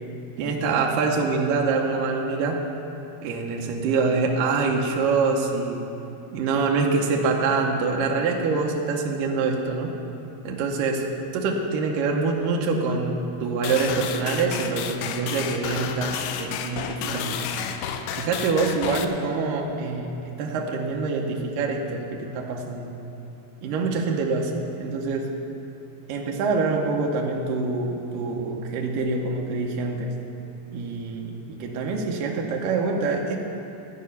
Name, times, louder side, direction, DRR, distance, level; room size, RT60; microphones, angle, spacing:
voice 1, 0.4-2.6 3.2-5.8 6.3-9.9 10.4-11.1 11.3-17.4 18.1-22.9 23.6-25.3 26.1-30.1 30.7-33.4, right 4 dB, 80° right, 0 dB, 2.0 m, -25 dB
sound 1, 13.6-19.1, left 8 dB, 85° left, 2.8 m, -31 dB
13.5 x 5.6 x 9.5 m, 2.8 s
omnidirectional pair, 5.1 m